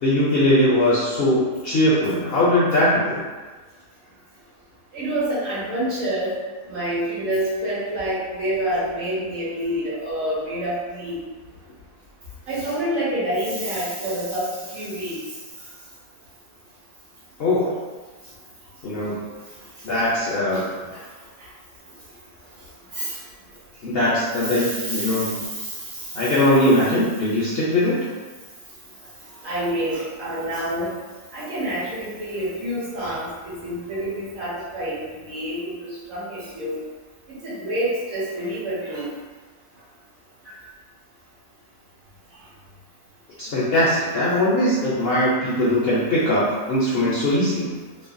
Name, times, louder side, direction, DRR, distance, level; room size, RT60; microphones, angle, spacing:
voice 1, 0.0-3.2 17.4-17.7 18.8-19.2 19.8-20.6 23.8-25.4 26.1-28.0 43.4-47.7, left 1 dB, 60° left, -8 dB, 0.6 m, -20 dB
voice 2, 4.9-6.4 6.7-11.2 12.5-15.2 20.5-20.6 20.9-21.0 22.9-23.2 24.4-25.7 26.2-26.3 29.4-30.9 31.3-36.8 37.4-39.1 40.5-40.6 43.7-43.8, right 1 dB, 70° right, -9 dB, 1.5 m, -27 dB
3.1 x 2.1 x 2.5 m, 1.3 s
omnidirectional pair, 1.5 m